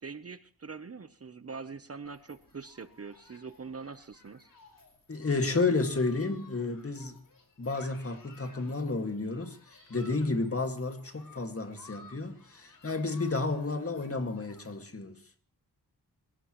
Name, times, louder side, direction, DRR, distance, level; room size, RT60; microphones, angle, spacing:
voice 1, 0.0-4.5, right 5 dB, 40° right, 0.8 m, -43 dB
Human group actions, 2.0-14.7, left 3 dB, 55° left, 5.1 m, -57 dB
voice 2, 5.1-7.2 7.6-15.2, left 3 dB, 35° left, 2.1 m, -31 dB
26.5 x 17.0 x 3.1 m
wide cardioid pair, 90°, 39 cm